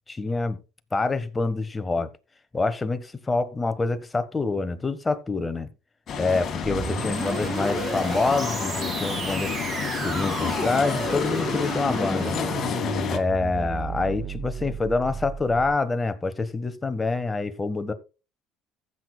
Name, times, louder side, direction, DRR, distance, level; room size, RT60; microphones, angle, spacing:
voice 1, 0.1-0.6 0.9-2.1 2.5-5.7 6.2-9.6 10.0-12.3 13.1-17.9, left 3 dB, 20° left, 1.3 m, -26 dB
sound 1, 6.1-13.2, left 6 dB, 45° left, 2.0 m, -29 dB
sound 2, 6.6-15.8, right 6 dB, 40° right, 0.5 m, -33 dB
15.5 x 8.2 x 2.3 m
supercardioid pair, 80°, 0 cm